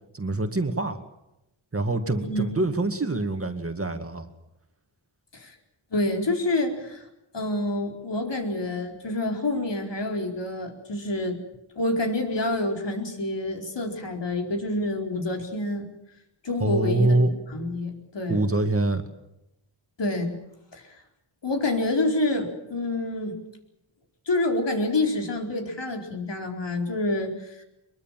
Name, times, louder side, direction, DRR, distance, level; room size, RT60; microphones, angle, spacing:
voice 1, 0.1-1.0 1.7-4.3 16.6-17.3 18.3-19.0, right 2 dB, 30° right, 6 dB, 2.1 m, -25 dB
voice 2, 5.9-7.0 7.3-11.4 11.8-15.9 16.4-17.2 17.5-18.4 20.0-20.3 20.7-20.8 21.4-23.4 24.3-27.6, left 2 dB, 60° left, 2 dB, 4.5 m, -27 dB
23.5 x 22.5 x 7.6 m, 0.88 s
wide cardioid pair, 95°, 47 cm